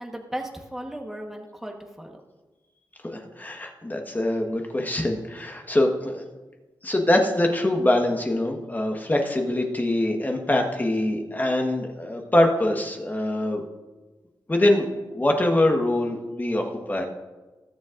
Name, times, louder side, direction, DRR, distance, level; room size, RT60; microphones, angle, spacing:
voice 1, 0.0-2.2, right 1 dB, 5° right, 1 dB, 1.2 m, -36 dB
voice 2, 3.0-6.2 6.8-13.6 14.5-17.0, left 1 dB, 20° left, 2 dB, 1.3 m, -24 dB
20.5 x 7.2 x 2.5 m, 1.2 s
wide cardioid pair, 90°, 8 cm